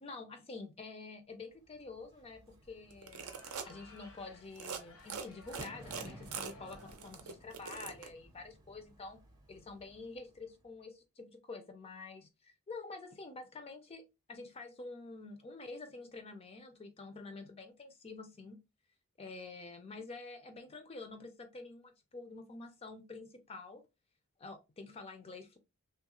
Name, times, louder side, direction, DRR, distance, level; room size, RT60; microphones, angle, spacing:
voice 1, 0.0-3.4 3.7-9.2 9.5-18.6 19.2-23.8 24.4-25.6, left 3 dB, 25° left, 0.4 m, -48 dB
Bird / Fireworks, 1.6-10.8, right 1 dB, 15° right, 0.6 m, -57 dB
sound 1, 2.9-3.7 4.5-4.8 5.1-8.1, right 6 dB, 75° right, 0.6 m, -43 dB
Crowd, 3.0-7.2, left 3 dB, 85° left, 0.7 m, -58 dB
3.0 x 2.3 x 2.9 m
head